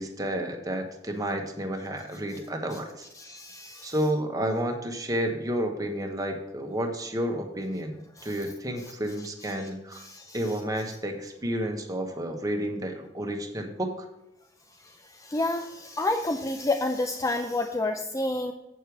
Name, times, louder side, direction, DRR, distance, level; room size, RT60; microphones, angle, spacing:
voice 1, 0.0-3.0 3.8-10.0 10.3-13.9, right 1 dB, 20° right, 3 dB, 1.2 m, -31 dB
voice 2, 3.2-3.9 8.2-8.3 9.6-10.4 15.2-18.5, left 2 dB, 15° left, 5 dB, 0.5 m, -29 dB
8.2 x 6.6 x 4.7 m, 0.91 s
head